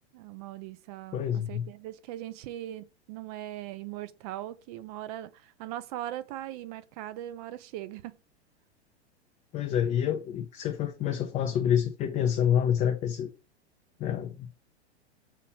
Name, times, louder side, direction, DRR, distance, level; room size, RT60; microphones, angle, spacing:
voice 1, 0.1-8.2, right 13 dB, 35° right, 0.4 m, -40 dB
voice 2, 1.1-1.7 9.5-13.3 14.0-14.5, left 9 dB, 20° left, 0.4 m, -27 dB
5.7 x 3.0 x 2.9 m
figure-of-eight pair, 100°, 34 cm